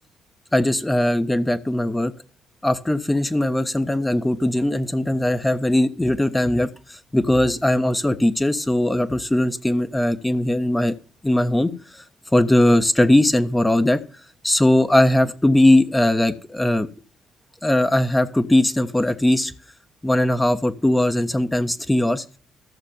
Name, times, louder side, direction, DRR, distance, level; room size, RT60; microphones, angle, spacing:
voice 1, 0.5-2.1 2.6-10.9 11.2-12.0 12.3-14.0 14.4-16.9 17.6-19.5 20.0-22.2, left 1 dB, 10° left, 8 dB, 1.2 m, -19 dB
14.5 x 6.6 x 5.3 m, 0.41 s
hypercardioid pair, 45°, 0 cm